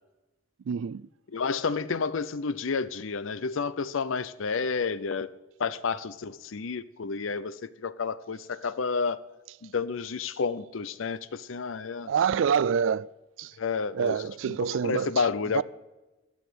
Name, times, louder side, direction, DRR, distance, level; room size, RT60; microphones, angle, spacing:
voice 1, 0.7-1.0 12.1-13.1 13.4-13.5 13.9-15.3 15.5-15.6, right 7 dB, 70° right, 0.3 m, -26 dB
voice 2, 1.3-5.3 5.6-9.2 9.6-12.1 13.6-14.6 14.8-15.6, left 5 dB, 80° left, 0.6 m, -30 dB
12.0 x 6.4 x 8.0 m
head